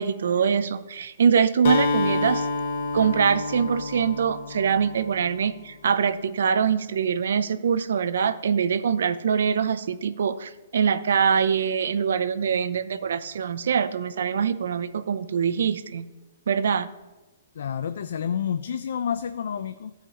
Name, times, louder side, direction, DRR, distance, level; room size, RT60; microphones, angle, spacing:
voice 1, 0.0-2.5 2.9-16.1 16.5-16.9, right 7 dB, 75° right, 13 dB, 0.5 m, -23 dB
Acoustic guitar, 1.6-5.5, left 3 dB, 55° left, 0.7 m, -28 dB
voice 2, 17.6-19.9, left 8 dB, 75° left, 12 dB, 0.3 m, -29 dB
14.5 x 4.9 x 2.9 m, 1.1 s
hypercardioid pair, 155°, 0 cm